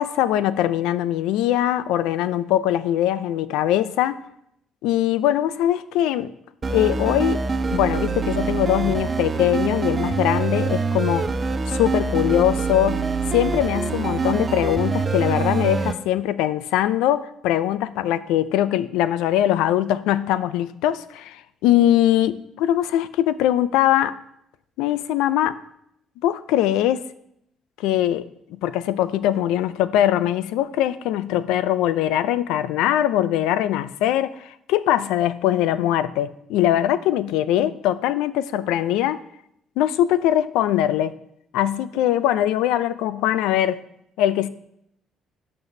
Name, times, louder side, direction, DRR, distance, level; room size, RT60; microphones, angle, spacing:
voice 1, 0.0-4.2 4.8-6.3 6.7-7.4 7.7-11.3 11.7-13.0 13.3-24.1 24.8-25.6 26.2-27.0 27.8-28.3 28.6-39.2 39.8-41.1 41.5-43.8 44.2-44.5, left 12 dB, 90° left, 0.4 m, -21 dB
sound 1, 6.6-15.9, right 4 dB, 30° right, 0.5 m, -24 dB
12.0 x 5.3 x 2.7 m
cardioid pair, 100°, 0 cm